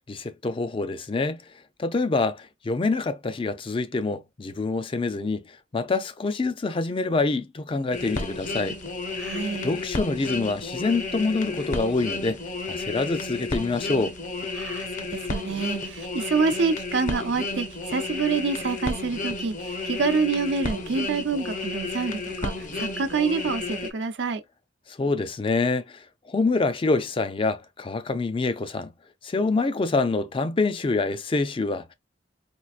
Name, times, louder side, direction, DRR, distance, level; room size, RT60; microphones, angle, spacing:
voice 1, 0.1-1.4 1.8-5.4 5.7-8.8 9.6-12.4 12.7-14.1 24.9-28.9 29.2-31.9, left 3 dB, 30° left, 0.4 m, -26 dB
sound 1, 7.9-23.9, left 3 dB, 45° left, 0.8 m, -32 dB
voice 2, 9.2-9.8 14.5-24.4, right 4 dB, 85° right, 0.6 m, -27 dB
4.5 x 2.4 x 2.4 m
head